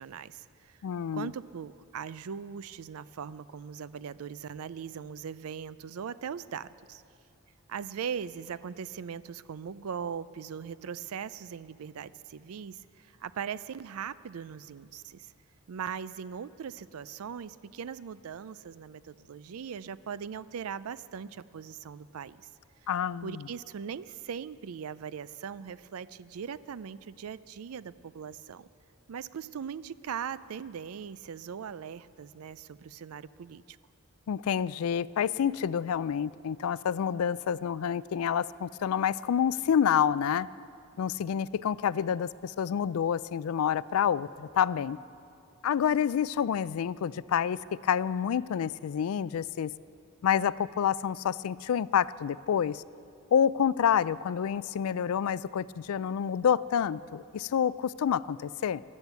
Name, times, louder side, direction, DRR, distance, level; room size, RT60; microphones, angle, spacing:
voice 1, 0.0-0.7 1.1-7.0 7.7-15.3 15.7-22.5 23.2-28.7 29.1-33.8, right 7 dB, 90° right, 17 dB, 0.4 m, -40 dB
voice 2, 0.8-1.3 22.9-23.5 34.3-40.5 41.0-45.0 45.6-49.7 50.2-52.8 53.3-58.8, left 8 dB, 85° left, 19 dB, 0.3 m, -28 dB
14.0 x 11.0 x 8.2 m, 2.6 s
head